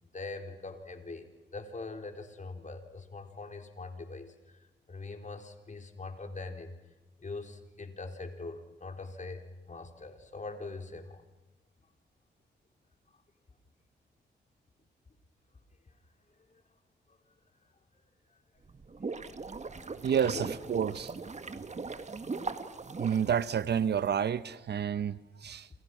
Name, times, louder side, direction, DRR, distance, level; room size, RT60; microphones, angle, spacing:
voice 1, 0.0-6.7 7.2-11.2 16.5-16.6 17.1-17.2 19.6-19.7 20.3-20.5, left 3 dB, 40° left, 5 dB, 4.2 m, -43 dB
sound 1, 18.6-24.1, right 4 dB, 35° right, 1.8 m, -40 dB
voice 2, 20.0-21.1 23.0-25.7, right 8 dB, 60° right, 16 dB, 0.9 m, -29 dB
29.0 x 28.0 x 6.1 m, 1.0 s
cardioid pair, 60°, 19 cm